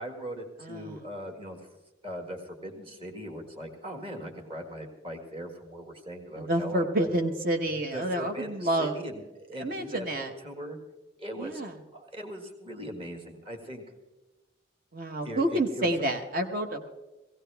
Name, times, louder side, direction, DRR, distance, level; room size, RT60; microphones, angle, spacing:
voice 1, 0.0-1.7 2.0-7.2 7.9-10.8 11.2-11.6 11.9-13.8 15.2-15.9, equal, 30° right, 3 dB, 1.7 m, -40 dB
voice 2, 0.6-1.0 6.4-9.0 9.6-10.3 11.4-11.7 14.9-16.9, right 1 dB, 45° right, 5 dB, 0.9 m, -29 dB
17.0 x 16.5 x 3.4 m, 1.1 s
head